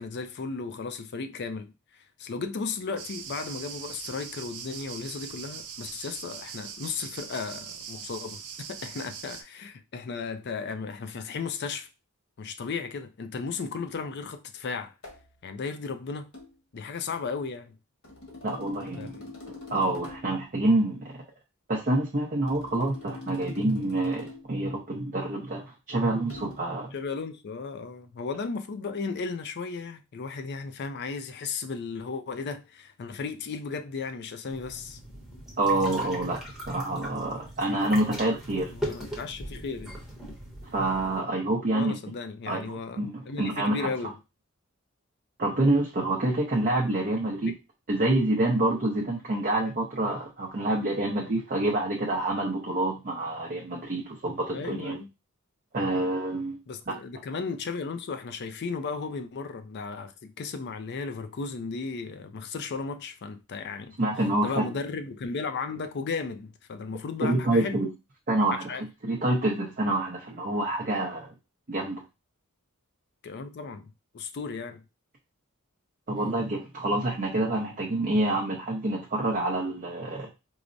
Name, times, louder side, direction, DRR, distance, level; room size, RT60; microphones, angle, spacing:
voice 1, 0.0-11.9 12.4-14.9 15.4-16.3 16.7-17.8 18.9-19.3 26.9-35.0 38.7-39.9 41.7-44.1 47.4-47.5 54.5-55.1 55.9-56.1 56.7-63.9 64.4-67.9 68.5-68.8 73.2-74.8, left 4 dB, 50° left, 0.4 m, -35 dB
sound 1, 3.0-9.4, right 7 dB, 85° right, 0.5 m, -41 dB
sound 2, 15.0-15.3 16.3-16.5 18.0-20.4 22.5-24.5 26.3-26.6, left 2 dB, 70° left, 1.2 m, -44 dB
voice 2, 18.4-19.2 19.7-21.2 21.7-26.9 35.6-36.4 36.7-38.7 40.7-42.0 42.5-43.9 45.4-47.5 47.9-55.0 55.7-56.6 64.0-64.7 67.2-67.9 68.3-71.3 71.7-72.0 76.1-80.3, right 2 dB, 40° right, 0.6 m, -27 dB
sound 3, 34.5-41.2, equal, ahead, 0.9 m, -40 dB
4.6 x 2.1 x 2.5 m
head